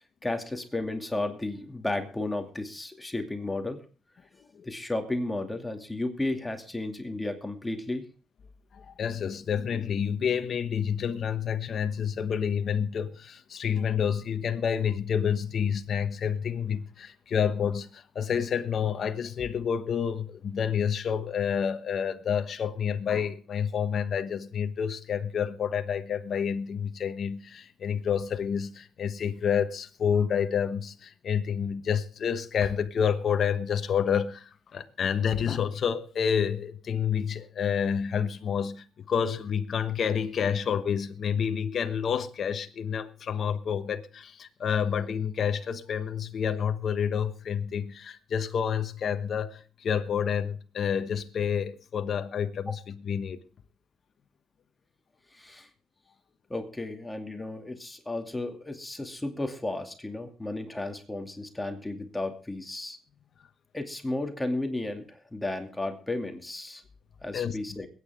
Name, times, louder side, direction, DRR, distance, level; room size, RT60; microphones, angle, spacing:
voice 1, 0.2-3.8 4.6-8.0 52.7-52.8 55.3-55.7 56.5-63.0 63.7-66.8 67.2-67.9, left 2 dB, 10° left, 2.5 m, -33 dB
voice 2, 8.7-53.4 67.3-67.6, left 7 dB, 55° left, 1.2 m, -29 dB
22.0 x 9.5 x 3.6 m
cardioid pair, 90°, 0 cm